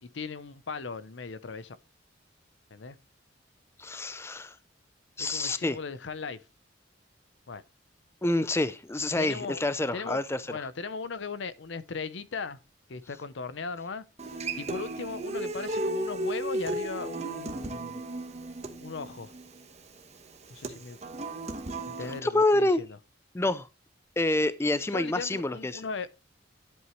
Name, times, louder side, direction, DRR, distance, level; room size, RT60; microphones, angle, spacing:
voice 1, 0.0-1.8 2.7-3.0 5.2-6.4 7.5-7.6 9.2-9.6 9.9-10.2 10.5-12.6 12.9-14.0 14.6-18.0 18.8-19.3 20.5-21.0 21.9-22.9 24.9-26.1, left 4 dB, 75° left, 0.7 m, -38 dB
voice 2, 3.8-4.6 5.2-5.8 8.2-10.6 22.2-22.8 23.3-23.7 24.2-25.9, left 2 dB, 15° left, 0.4 m, -27 dB
Human voice / Acoustic guitar, 14.2-22.2, right 1 dB, 35° right, 1.1 m, -35 dB
11.0 x 7.9 x 3.1 m
head